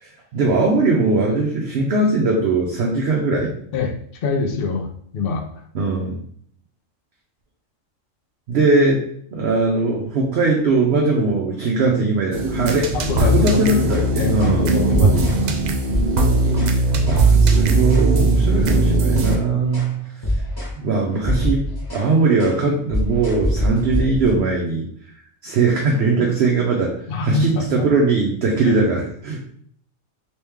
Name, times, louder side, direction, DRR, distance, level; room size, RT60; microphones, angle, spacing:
voice 1, 0.0-3.5 5.7-6.2 8.5-9.0 9.3-12.9 13.2-15.3 16.7-20.0 20.8-24.9 25.4-29.4, right 3 dB, 60° right, -1 dB, 0.8 m, -20 dB
voice 2, 4.2-5.4 12.9-13.8 14.2-15.7 27.1-27.9 28.6-28.8, left 4 dB, 55° left, 2 dB, 0.7 m, -25 dB
sound 1, 12.3-19.4, right 2 dB, 85° right, 0.4 m, -18 dB
sound 2, 13.8-14.1 14.4-14.6 14.9-15.4 15.8-16.8 17.1-17.3 17.6-18.1 18.5-19.4 19.7-20.0 20.2-20.8 21.1-22.1 22.4-22.6 22.9-24.4, left 1 dB, 20° left, 1.1 m, -25 dB
3.1 x 3.1 x 3.4 m, 0.63 s
omnidirectional pair, 1.3 m